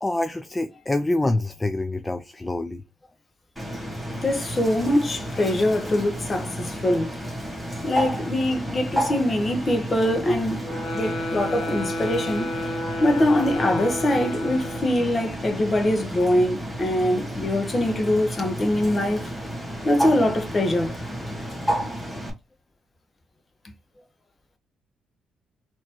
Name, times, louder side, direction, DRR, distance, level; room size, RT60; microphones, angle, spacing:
voice 1, 0.0-2.8, left 2 dB, 15° left, 0.3 m, -26 dB
Bird, 3.6-22.3, equal, ahead, 1.5 m, -32 dB
voice 2, 4.2-7.2 7.8-10.6 10.9-12.5 13.0-19.3 19.8-21.0, left 1 dB, 35° left, 1.1 m, -23 dB
sound 1, 10.6-15.1, left 1 dB, 80° left, 1.3 m, -31 dB
4.0 x 3.0 x 2.9 m
cardioid pair, 90°, 0 cm